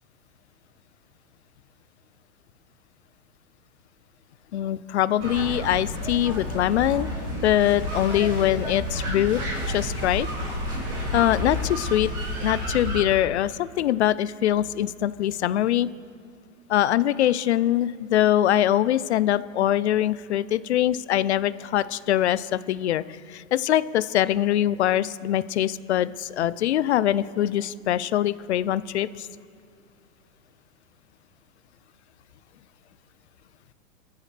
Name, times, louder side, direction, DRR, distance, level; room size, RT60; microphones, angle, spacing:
voice 1, 4.5-7.1 7.4-10.3 11.1-12.1 12.4-15.9 16.7-29.3, left 12 dB, 55° left, 17 dB, 0.5 m, -23 dB
sound 1, 5.2-13.0, equal, 20° right, 2.7 m, -30 dB
23.5 x 14.5 x 3.3 m, 2.6 s
supercardioid pair, 175°, 41 cm